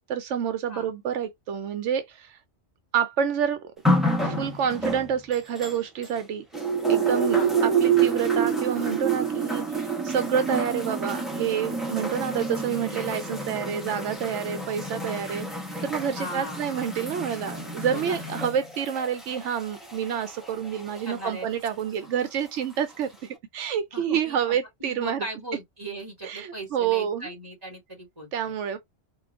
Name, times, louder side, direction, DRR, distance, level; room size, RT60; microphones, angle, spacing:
voice 1, 0.0-2.4 2.9-3.6 4.2-6.4 6.9-15.5 15.8-25.2 26.2-27.3 28.3-28.8, right 8 dB, 80° right, 0.9 m, -28 dB
sound 1, 3.8-6.2 6.5-21.3 22.1-22.2, right 4 dB, ahead, 0.9 m, -28 dB
voice 2, 16.2-16.6 17.9-18.2 21.1-21.5 23.9-28.5, right 1 dB, 20° right, 2.8 m, -38 dB
4.6 x 2.3 x 2.4 m
omnidirectional pair, 1.2 m